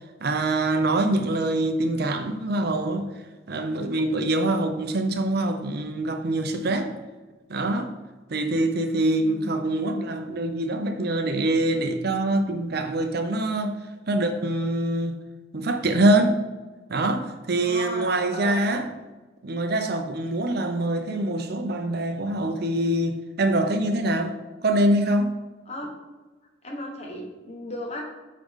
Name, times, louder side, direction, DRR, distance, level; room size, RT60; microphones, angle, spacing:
voice 1, 0.2-3.1 3.5-6.9 7.5-7.9 8.3-13.7 14.1-15.2 15.5-16.4 16.9-18.9 19.4-24.4 24.6-25.3, right 1 dB, 55° right, 0.7 m, -24 dB
voice 2, 9.2-9.5 17.6-18.6 25.7-25.9 26.6-28.0, left 2 dB, 35° left, 1.2 m, -35 dB
8.5 x 3.8 x 3.7 m
head